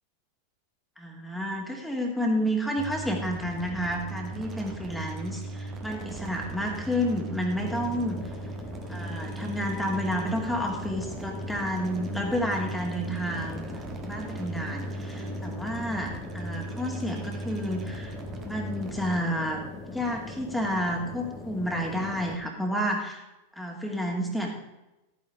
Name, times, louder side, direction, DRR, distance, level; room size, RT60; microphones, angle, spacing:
voice 1, 1.0-8.2 8.9-18.1 18.5-23.2 23.6-24.5, equal, ahead, 0 dB, 2.4 m, -30 dB
sound 1, 2.8-19.2, right 2 dB, 25° right, 1.7 m, -38 dB
sound 2, 7.5-22.4, left 4 dB, 25° left, 1.7 m, -41 dB
14.0 x 9.2 x 3.6 m, 0.97 s
figure-of-eight pair, 90°, 0 cm